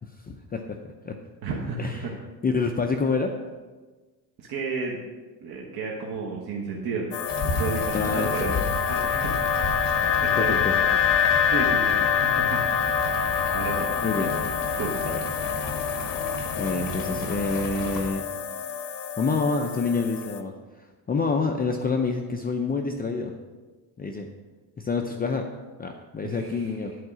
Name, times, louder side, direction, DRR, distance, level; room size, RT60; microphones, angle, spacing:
voice 1, 0.2-0.8 1.0-1.2 1.8-2.2 2.4-3.4 7.9-8.5 10.4-11.0 14.0-14.5 15.0-15.2 16.6-18.2 19.2-23.3 24.0-24.3 24.8-25.5 25.8-26.9, left 4 dB, 20° left, 3 dB, 0.5 m, -27 dB
voice 2, 1.4-2.2 4.4-5.0 5.4-7.1 7.4-9.4 9.7-10.5 11.4-12.6 13.5-13.9 14.8-14.9 26.2-26.7, right 4 dB, 60° right, -2 dB, 1.4 m, -32 dB
sound 1, 7.1-20.4, left 7 dB, 75° left, 0.8 m, -26 dB
sound 2, 7.3-18.1, left 2 dB, 50° left, 2.1 m, -34 dB
11.0 x 4.7 x 6.1 m, 1.3 s
cardioid pair, 140°, 42 cm